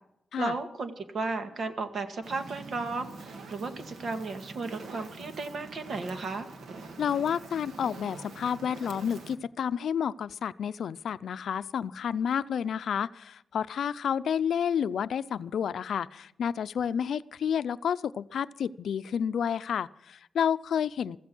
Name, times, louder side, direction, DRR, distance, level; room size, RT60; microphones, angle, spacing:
voice 1, 0.4-6.5, right 3 dB, 60° right, 7 dB, 1.9 m, -34 dB
Fire, 2.2-9.3, right 3 dB, 90° right, 2.1 m, -45 dB
voice 2, 7.0-21.2, left 8 dB, 85° left, 14 dB, 0.5 m, -30 dB
15.0 x 15.0 x 6.2 m, 0.79 s
wide cardioid pair, 115°, 0 cm